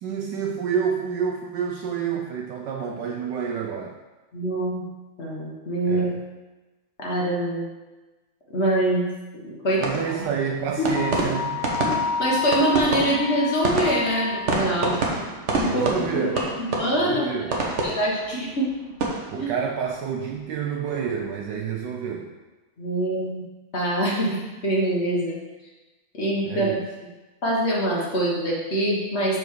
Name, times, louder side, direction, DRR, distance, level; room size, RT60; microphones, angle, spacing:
voice 1, 0.0-4.0 5.9-6.2 9.8-11.7 15.6-16.5 17.0-17.6 19.3-22.3 26.4-26.8, right 7 dB, 75° right, 1 dB, 1.0 m, -28 dB
voice 2, 4.3-4.8 5.2-6.1 7.0-7.7 8.5-9.0 9.3-9.8 10.1-10.3 10.8-10.9 11.8-11.9 12.2-14.9 15.6-17.3 17.8-18.7 19.3-19.5 22.8-23.4 23.7-25.4 26.1-26.7 27.4-29.4, right 1 dB, 35° left, -4 dB, 1.4 m, -24 dB
sound 1, 9.7-20.8 21.1-21.6, right 3 dB, 45° right, 1.0 m, -29 dB
Wind instrument woodwind instrument, 10.9-14.8, left 7 dB, 75° left, 1.0 m, -29 dB
6.9 x 4.7 x 4.6 m, 1.1 s
omnidirectional pair, 2.3 m